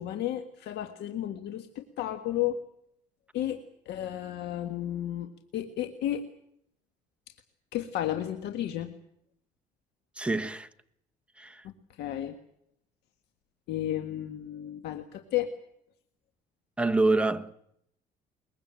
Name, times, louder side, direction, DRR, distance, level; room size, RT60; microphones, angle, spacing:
voice 1, 0.0-2.6 3.3-6.3 7.7-8.9 12.0-12.4 13.7-15.5, left 12 dB, 80° left, 1.8 m, -33 dB
voice 2, 10.2-10.7 11.4-11.6 16.8-17.5, right 2 dB, 5° right, 1.4 m, -26 dB
22.5 x 21.5 x 9.0 m
cardioid pair, 110°, 17 cm